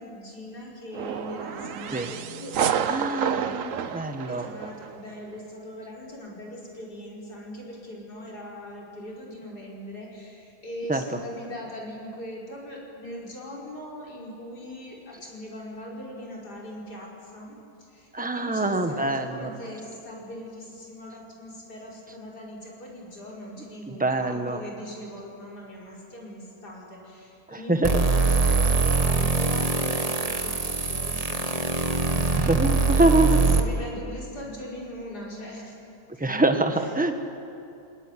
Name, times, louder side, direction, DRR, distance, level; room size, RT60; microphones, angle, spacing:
voice 1, 0.0-3.6 4.3-32.5 33.1-35.9 36.7-37.0, equal, 85° left, -3 dB, 5.5 m, -40 dB
sound 1, 0.9-5.0, right 8 dB, 60° right, 1.2 m, -29 dB
voice 2, 2.9-3.7 3.9-4.4 10.9-11.0 18.1-19.5 24.0-24.6 27.5-27.9 32.3-33.4 36.2-37.2, right 2 dB, 5° right, 6 dB, 1.3 m, -24 dB
sound 2, 27.8-33.6, right 4 dB, 25° right, 1.4 m, -23 dB
23.5 x 19.5 x 10.0 m, 2.7 s
omnidirectional pair, 1.7 m